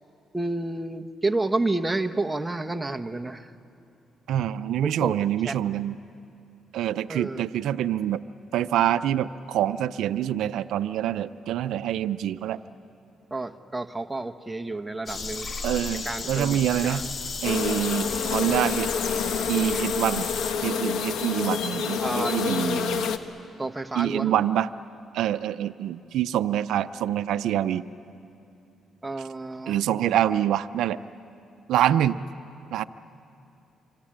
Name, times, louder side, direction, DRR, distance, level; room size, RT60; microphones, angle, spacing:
voice 1, 0.3-3.5 4.8-5.1 5.4-5.6 7.1-7.4 13.3-15.5 16.0-17.1 22.0-22.8 23.6-24.4 29.0-30.0, right 2 dB, 10° right, 6 dB, 1.2 m, -30 dB
voice 2, 4.3-5.9 6.7-8.2 8.5-12.6 15.6-17.0 17.4-19.2 19.5-20.3 20.6-23.1 24.0-24.7 25.1-27.8 29.7-31.0 31.7-32.2 32.7-32.8, right 11 dB, 80° right, 12 dB, 0.6 m, -26 dB
sound 1, 15.1-20.5, left 4 dB, 45° left, 1.4 m, -34 dB
sound 2, 17.4-23.2, left 6 dB, 75° left, 1.2 m, -28 dB
26.0 x 25.0 x 8.9 m, 2.6 s
cardioid pair, 90°, 0 cm